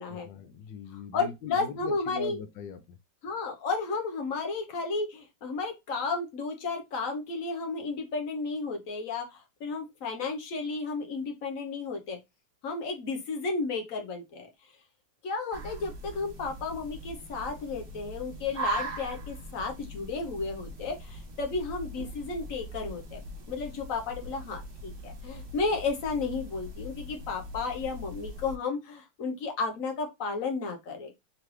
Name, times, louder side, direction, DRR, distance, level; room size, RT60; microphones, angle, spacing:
voice 1, 0.1-3.0, left 6 dB, 90° left, 1.4 m, -41 dB
voice 2, 1.1-2.4 3.2-12.2 12.6-14.5 15.2-23.2 23.5-31.1, left 4 dB, 55° left, 1.2 m, -33 dB
sound 1, 15.5-28.6, equal, 40° right, 0.9 m, -40 dB
3.8 x 3.2 x 3.1 m
omnidirectional pair, 1.9 m